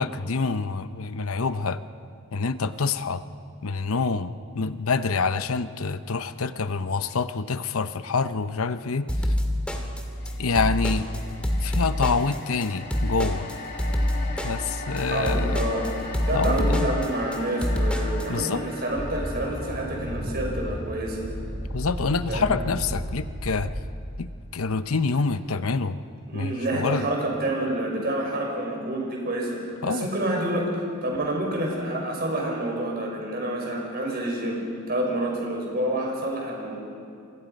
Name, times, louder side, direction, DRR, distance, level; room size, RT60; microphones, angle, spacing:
voice 1, 0.0-1.8 2.3-3.2 3.6-9.3 10.4-11.1 11.6-13.5 14.4-15.6 16.3-16.9 18.3-18.6 21.7-23.7 24.2-26.0 26.3-27.1 29.8-30.1, left 4 dB, 75° left, 12 dB, 0.8 m, -26 dB
sound 1, 9.1-18.3, left 1 dB, 5° left, 2.0 m, -26 dB
sound 2, 10.2-24.5 24.9-25.1, left 2 dB, 45° left, 2.7 m, -41 dB
voice 2, 15.1-21.2 22.3-22.5 26.3-36.8, right 1 dB, 45° right, 0 dB, 5.5 m, -28 dB
sound 3, 18.9-24.0, equal, 30° right, 2.6 m, -33 dB
28.5 x 24.5 x 5.3 m, 2.4 s
head